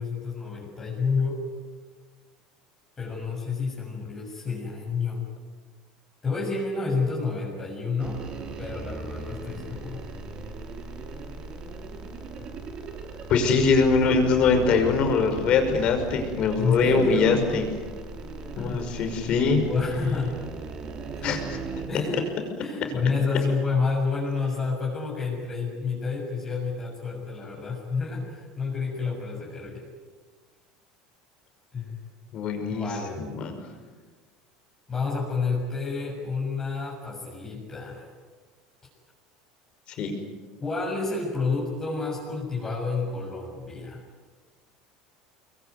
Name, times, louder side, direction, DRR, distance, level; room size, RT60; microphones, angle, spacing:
voice 1, 0.0-1.4 3.0-5.2 6.2-8.2 8.6-10.0 16.6-17.5 18.6-18.8 19.4-20.4 21.2-21.4 21.9-22.3 22.6-29.9 31.7-32.0 32.7-33.4 34.9-38.1 40.6-44.0, left 4 dB, 25° left, -3 dB, 7.2 m, -29 dB
sound 1, 8.0-21.9, right 4 dB, 40° right, 3.8 m, -38 dB
voice 2, 13.3-17.6 18.6-19.6 21.2-21.4 32.3-32.9 33.2-33.5 40.0-40.1, left 4 dB, 50° left, 6 dB, 5.8 m, -22 dB
25.0 x 22.5 x 9.6 m, 1.4 s
supercardioid pair, 125°, 2 cm